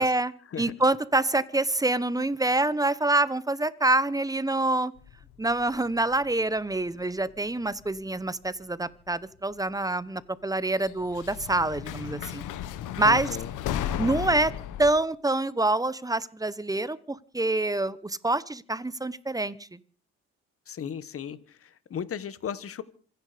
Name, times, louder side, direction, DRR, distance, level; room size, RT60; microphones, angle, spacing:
voice 1, 0.0-0.3 0.6-4.9 5.4-12.4 13.0-13.3 14.0-14.5 14.8-19.8, right 2 dB, 10° right, 17 dB, 1.0 m, -26 dB
sound 1, 5.0-7.0 7.3-8.0 9.1-9.2 10.8-14.9, left 10 dB, 85° left, 1.3 m, -35 dB
voice 2, 13.0-13.5 20.7-22.8, left 8 dB, 50° left, 15 dB, 1.4 m, -36 dB
25.5 x 10.5 x 5.1 m, 0.43 s
cardioid pair, 90°, 30 cm